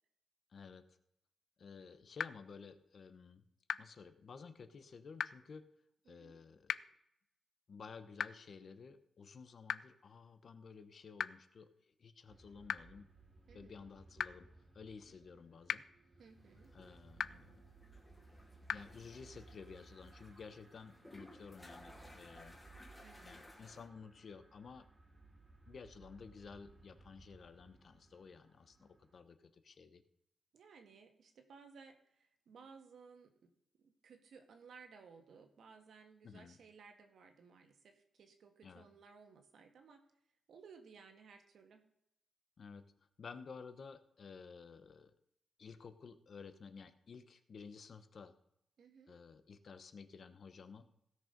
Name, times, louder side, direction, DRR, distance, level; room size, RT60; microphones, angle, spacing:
voice 1, 0.5-0.8 1.6-3.4 3.8-5.6 6.1-6.8 7.7-13.1 13.5-14.5 14.7-15.8 16.7-17.6 18.7-22.6 23.2-24.9 25.7-30.0 36.2-36.6 38.6-38.8 42.6-42.8 43.2-45.1 45.6-48.3 49.1-50.9, left 5 dB, 50° left, 10 dB, 1.0 m, -53 dB
sound 1, 2.2-2.3 3.7-3.8 5.2-5.3 6.7-6.8 8.2-8.3 9.7-9.8 11.2-11.3 12.7-12.8 14.2-14.3 15.7-15.8 17.2-17.3 18.7-18.8, left 8 dB, 75° left, 0.4 m, -35 dB
voice 2, 6.1-6.4 13.5-13.9 16.2-16.7 23.0-23.3 30.5-33.5 33.8-40.0 40.5-41.8 48.8-49.2, right 5 dB, 75° right, 5 dB, 1.7 m, -59 dB
sound 2, 12.3-29.2, right 3 dB, 35° right, 2.2 m, -62 dB
sound 3, 16.3-23.9, left 1 dB, 10° left, 2.7 m, -60 dB
16.5 x 6.4 x 5.2 m, 0.77 s
wide cardioid pair, 140°, 0 cm